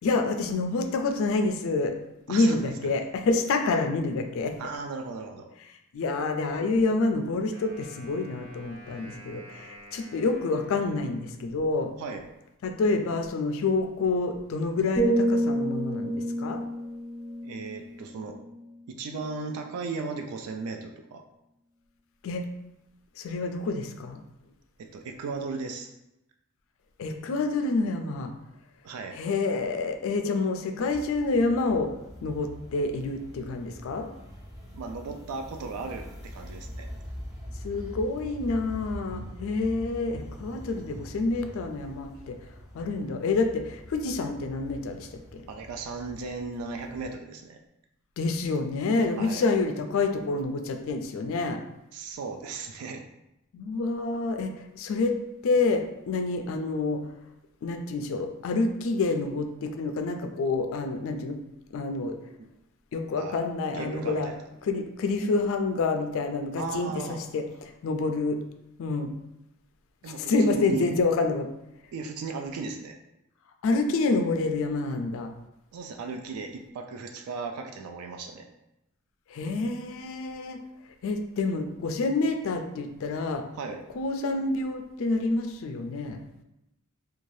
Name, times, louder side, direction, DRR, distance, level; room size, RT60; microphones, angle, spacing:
voice 1, 0.0-2.0 2.3-4.6 5.9-11.9 12.6-16.6 22.2-22.4 23.2-24.2 27.0-28.3 29.1-31.9 32.2-34.1 37.6-42.4 42.7-45.4 48.2-51.6 53.5-55.1 55.4-57.0 57.6-61.4 61.7-62.2 62.9-64.3 64.6-68.4 68.8-69.1 70.1-71.5 73.6-75.3 79.3-80.6 81.0-83.4 84.0-86.2, left 3 dB, 60° left, 5 dB, 0.3 m, -28 dB
voice 2, 2.3-2.9 4.6-5.5 12.0-12.2 17.4-18.4 18.9-21.2 24.8-25.9 28.8-29.2 34.7-36.9 42.1-42.2 45.5-47.6 49.2-49.4 51.9-53.0 62.4-62.5 63.2-63.4 63.7-64.4 66.6-67.2 70.0-70.9 71.9-73.0 75.7-78.5 83.6-83.8 86.4-86.5, right 4 dB, 75° right, 4 dB, 0.3 m, -36 dB
Wind instrument woodwind instrument, 7.5-11.8, right 1 dB, 60° right, 1.4 m, -50 dB
sound 1, 15.0-18.9 19.3-19.6, right 1 dB, 25° left, 0.7 m, -29 dB
sound 2, 30.8-47.1, equal, 15° right, 0.5 m, -44 dB
2.6 x 2.3 x 3.1 m, 0.89 s
head